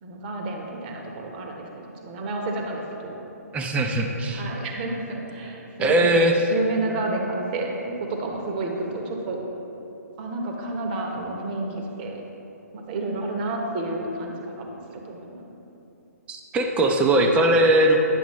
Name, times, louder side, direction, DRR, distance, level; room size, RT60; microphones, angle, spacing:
voice 1, 0.0-3.2 4.3-9.4 10.2-12.2 12.7-15.4, right 2 dB, 35° right, 1 dB, 1.1 m, -30 dB
voice 2, 3.5-4.4 5.8-6.4 16.3-18.0, right 1 dB, 15° right, 3 dB, 0.6 m, -20 dB
10.0 x 6.8 x 3.1 m, 2.9 s
figure-of-eight pair, 130°, 9 cm